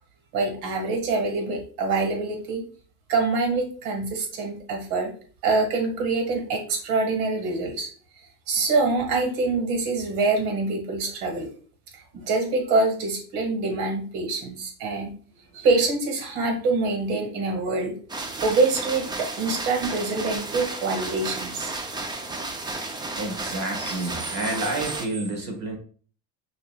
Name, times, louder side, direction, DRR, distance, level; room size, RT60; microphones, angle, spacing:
voice 1, 0.3-2.6 3.1-5.1 5.4-7.9 8.5-11.5 11.9-15.1 15.5-17.9 18.4-21.7, right 3 dB, 80° right, 3 dB, 1.7 m, -25 dB
sound 1, 18.1-25.1, right 2 dB, 10° right, 0.4 m, -33 dB
voice 2, 23.1-25.8, right 2 dB, 40° right, 3 dB, 1.4 m, -29 dB
6.3 x 2.9 x 2.3 m, 0.43 s
supercardioid pair, 125°, 43 cm